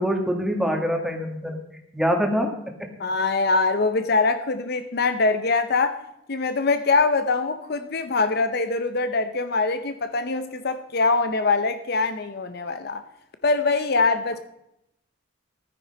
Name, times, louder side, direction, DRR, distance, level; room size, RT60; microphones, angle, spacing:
voice 1, 0.0-1.6 1.9-2.5 2.8-2.9, equal, ahead, 1.6 m, -24 dB
voice 2, 3.0-6.0 6.3-13.0 13.4-14.4, left 3 dB, 50° left, 0.6 m, -23 dB
13.0 x 9.7 x 5.2 m
head